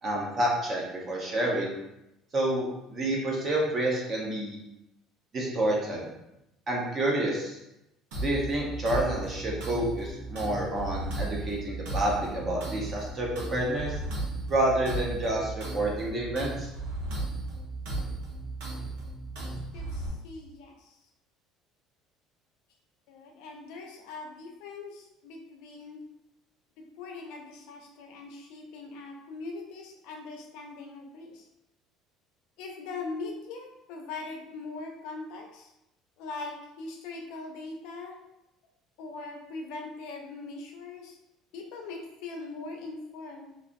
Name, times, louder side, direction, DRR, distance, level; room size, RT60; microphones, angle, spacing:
voice 1, 0.0-1.7 2.3-4.6 5.3-6.1 6.7-7.6 8.2-14.0 14.5-16.7, right 1 dB, 25° right, -2 dB, 0.7 m, -29 dB
sound 1, 8.1-20.1, right 2 dB, 90° right, 0.9 m, -35 dB
voice 2, 19.4-21.0 23.1-26.0 27.0-31.5 32.6-35.7 36.2-38.1 39.0-41.2 41.5-43.5, left 3 dB, 70° left, 2 dB, 0.6 m, -41 dB
3.2 x 2.4 x 2.5 m, 0.88 s
cardioid pair, 170°, 0 cm